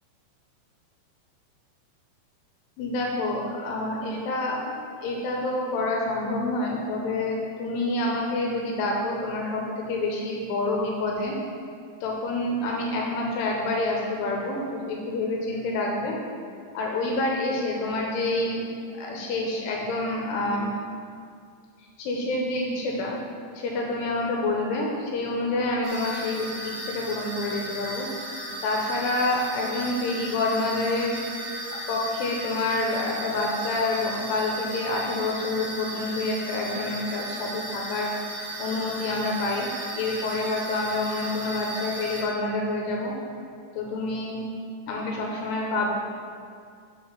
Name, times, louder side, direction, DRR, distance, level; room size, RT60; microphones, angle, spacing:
voice 1, 2.8-11.4 12.0-16.2 16.7-18.7 18.9-20.7 22.0-23.2 23.6-28.1 28.6-31.2 31.7-38.1 38.6-39.7 40.0-43.1 43.8-44.4 44.9-45.9, left 2 dB, 75° left, -1 dB, 2.7 m, -28 dB
sound 1, 25.8-42.2, right 1 dB, 80° right, 1.1 m, -36 dB
8.3 x 5.2 x 5.8 m, 2.3 s
omnidirectional pair, 5.4 m